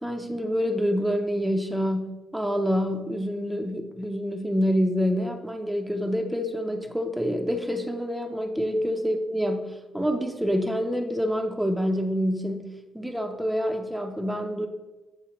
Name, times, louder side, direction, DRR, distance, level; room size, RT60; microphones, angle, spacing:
voice 1, 0.0-12.7 12.9-14.7, equal, ahead, 3 dB, 0.5 m, -27 dB
8.1 x 4.0 x 3.0 m, 1.1 s
cardioid pair, 120°, 0 cm